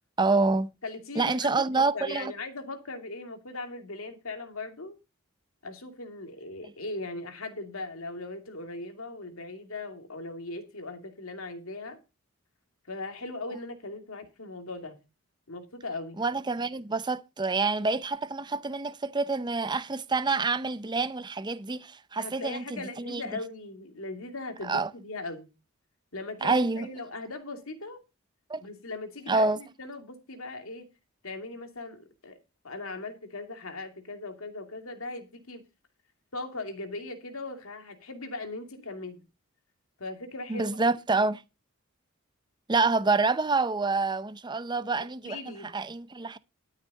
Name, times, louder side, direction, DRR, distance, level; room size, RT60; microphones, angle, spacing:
voice 1, 0.2-0.7 1.2-2.3 16.2-23.2 24.6-24.9 26.4-26.9 28.5-28.6 29.3-29.6 40.5-41.4 42.7-46.4, right 3 dB, 20° right, 0.6 m, -27 dB
voice 2, 0.8-5.0 5.6-12.0 12.9-15.0 15.5-16.2 22.2-25.5 26.1-28.0 28.6-30.9 31.2-32.4 32.6-35.6 36.3-39.2 40.0-40.8 45.2-45.7, left 2 dB, 80° left, 2.5 m, -39 dB
12.5 x 6.6 x 5.4 m
head